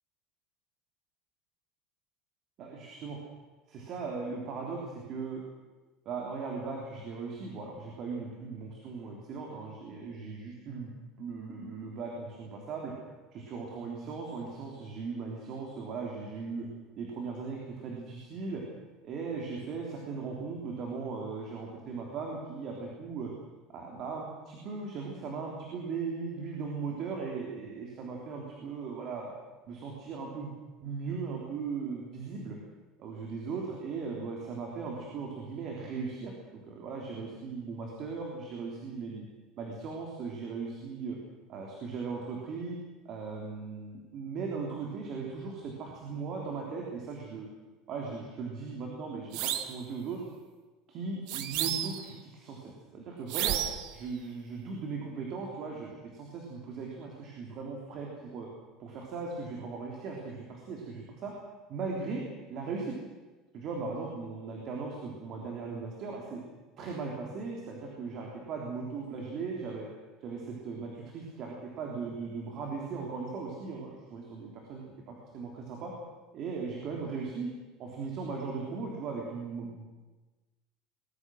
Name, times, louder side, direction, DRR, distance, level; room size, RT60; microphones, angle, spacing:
voice 1, 2.6-3.2 3.7-4.8 5.1-5.4 6.1-10.9 11.2-12.9 13.3-16.7 17.0-18.6 19.0-23.3 23.7-29.3 29.7-30.5 30.8-32.6 33.0-39.2 39.6-41.2 41.5-42.7 43.1-47.5 47.9-50.2 50.9-53.6 53.9-58.5 58.8-61.3 61.7-62.2 62.5-63.0 63.5-66.4 66.8-69.9 70.2-75.9 76.3-77.5 77.8-79.9, right 4 dB, 35° right, 0 dB, 3.4 m, -38 dB
sound 1, 49.3-49.8 51.3-52.1 53.3-53.9, right 12 dB, 55° right, 1.6 m, -32 dB
23.0 x 20.5 x 6.4 m, 1.2 s
cardioid pair, 175°, 0 cm